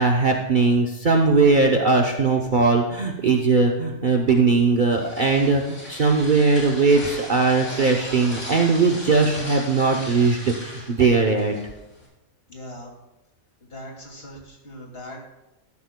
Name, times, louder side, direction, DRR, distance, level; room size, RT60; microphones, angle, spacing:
voice 1, 0.0-11.5, right 4 dB, 45° right, 1 dB, 0.8 m, -19 dB
sound 1, 4.6-12.1, left 1 dB, 90° left, 3.4 m, -38 dB
voice 2, 12.5-12.9 13.7-15.2, left 1 dB, 45° left, 0 dB, 2.6 m, -40 dB
14.0 x 12.0 x 2.2 m, 0.96 s
omnidirectional pair, 1.4 m